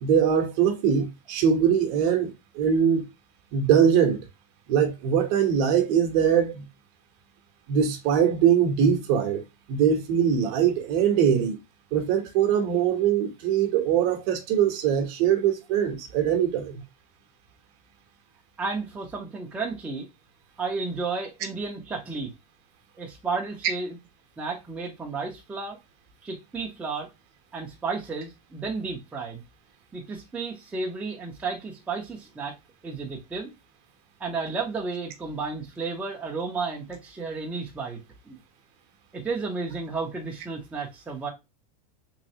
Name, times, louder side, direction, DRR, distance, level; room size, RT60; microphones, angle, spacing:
voice 1, 0.0-3.0 3.5-4.2 4.7-6.6 7.7-9.4 9.7-11.6 11.9-16.8, right 8 dB, 45° right, 0.8 m, -22 dB
voice 2, 18.6-20.1 20.6-22.3 23.0-24.0 24.4-25.8 26.2-27.1 27.5-29.4 29.9-32.5 32.8-33.5 34.2-38.0 38.3-38.4 39.1-41.3, right 4 dB, 5° right, 0.6 m, -32 dB
3.3 x 3.2 x 2.7 m
supercardioid pair, 165°, 19 cm